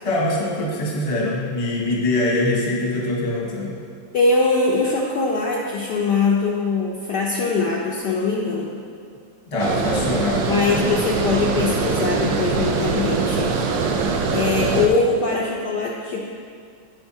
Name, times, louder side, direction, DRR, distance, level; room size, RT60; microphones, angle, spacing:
voice 1, 0.0-3.8 9.5-10.6, left 2 dB, 25° left, -3 dB, 0.8 m, -23 dB
voice 2, 4.1-8.8 10.4-13.5 14.3-16.3, left 3 dB, 70° left, -3 dB, 1.0 m, -22 dB
Water, 9.6-14.9, right 4 dB, 70° right, 1.1 m, -23 dB
8.7 x 7.8 x 2.8 m, 2.1 s
omnidirectional pair, 2.4 m